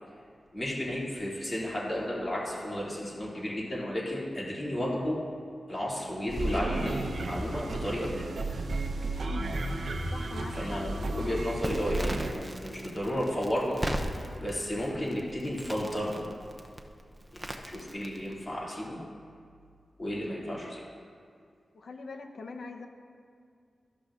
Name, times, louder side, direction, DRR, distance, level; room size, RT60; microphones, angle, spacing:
voice 1, 0.5-5.2 5.7-8.3 10.5-13.8 14.1-16.3 17.3-19.0 20.0-20.8, equal, 25° left, -6 dB, 2.4 m, -33 dB
sound 1, 6.3-12.3, right 2 dB, 65° right, 0.7 m, -33 dB
voice 2, 10.1-10.8 21.7-22.9, left 3 dB, 65° left, 5 dB, 0.7 m, -42 dB
Crackle, 11.6-18.4, right 1 dB, 10° right, 0.6 m, -39 dB
13.5 x 12.0 x 2.5 m, 2.2 s
wide cardioid pair, 160°, 0 cm